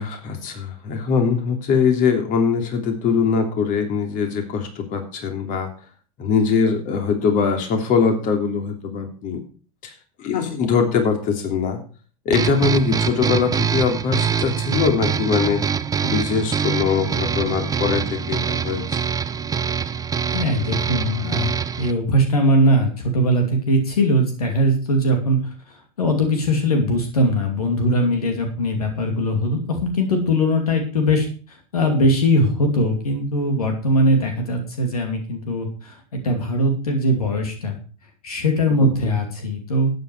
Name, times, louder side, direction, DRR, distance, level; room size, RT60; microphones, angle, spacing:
voice 1, 0.0-5.7 6.2-9.4 9.8-9.9 10.2-11.8 12.2-15.6 16.0-18.8, left 5 dB, 45° left, 5 dB, 3.1 m, -22 dB
sound 1, 12.3-21.9, right 7 dB, 20° right, 0.8 m, -24 dB
voice 2, 20.3-21.5 21.8-25.4 25.7-37.8 38.2-39.9, equal, 80° left, 4 dB, 2.7 m, -20 dB
12.5 x 9.3 x 4.7 m, 0.38 s
hypercardioid pair, 85°, 19 cm